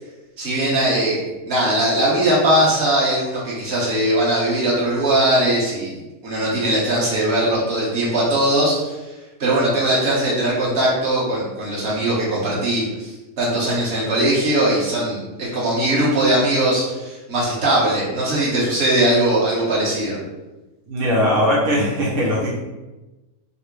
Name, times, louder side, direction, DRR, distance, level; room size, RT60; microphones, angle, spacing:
voice 1, 0.4-9.1 9.4-20.2, right 1 dB, 45° right, -7 dB, 1.4 m, -20 dB
voice 2, 20.9-22.6, equal, 75° right, -6 dB, 1.2 m, -19 dB
4.8 x 2.0 x 3.1 m, 1.1 s
omnidirectional pair, 1.5 m